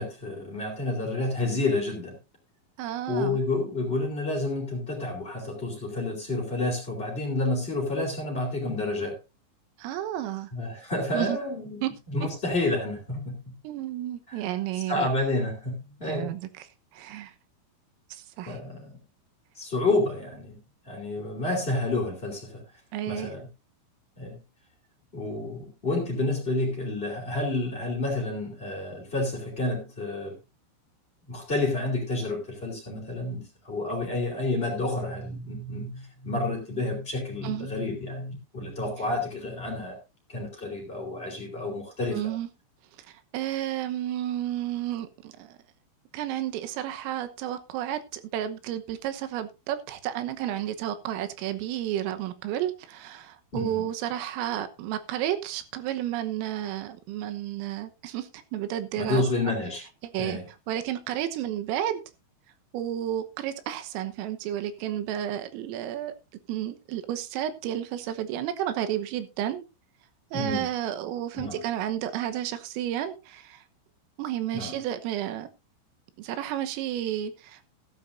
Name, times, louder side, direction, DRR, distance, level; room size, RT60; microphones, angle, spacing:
voice 1, 0.0-2.1 3.1-9.1 10.5-13.5 14.3-14.4 14.9-16.3 18.4-19.0 19.5-20.6 20.8-22.6 23.1-23.5 24.2-24.4 25.1-30.3 31.3-40.0 40.3-42.2 53.5-53.9 58.9-59.8 60.2-60.4 70.3-70.7 71.3-71.6 74.5-74.8, left 2 dB, 15° left, -3 dB, 2.1 m, -29 dB
voice 2, 2.8-3.4 9.8-10.5 11.1-11.4 11.8-11.9 13.6-15.1 16.1-16.7 16.9-17.3 18.1-18.6 22.9-23.3 37.4-37.7 42.1-42.5 43.1-45.6 46.1-59.2 60.1-60.4 60.7-62.0 62.7-66.2 66.5-69.7 70.3-73.6 74.2-75.5 76.2-77.7, right 11 dB, 85° right, 10 dB, 3.6 m, -31 dB
14.5 x 13.0 x 2.6 m, 0.27 s
omnidirectional pair, 6.0 m